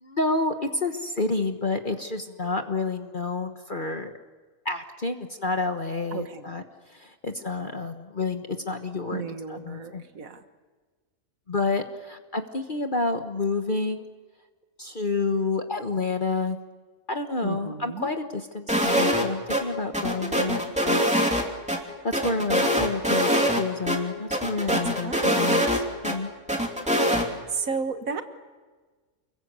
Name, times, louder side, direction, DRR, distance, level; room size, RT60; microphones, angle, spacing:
voice 1, 0.0-4.1 4.6-6.6 6.9-9.2 9.5-10.0 11.5-14.0 14.8-16.6 17.1-21.1 22.0-25.7 26.0-26.3, left 3 dB, 40° left, 6 dB, 1.4 m, -29 dB
voice 2, 6.1-6.5 9.1-10.4 17.4-18.1 24.7-25.6 27.5-28.2, right 5 dB, 75° right, 8 dB, 1.9 m, -33 dB
sound 1, 18.7-19.2 19.5-19.6 19.9-21.8 22.1-23.6 23.9-24.0 24.3-26.1 26.5-27.3, equal, 5° right, 2.9 m, -23 dB
29.5 x 21.5 x 8.2 m, 1.4 s
omnidirectional pair, 1.4 m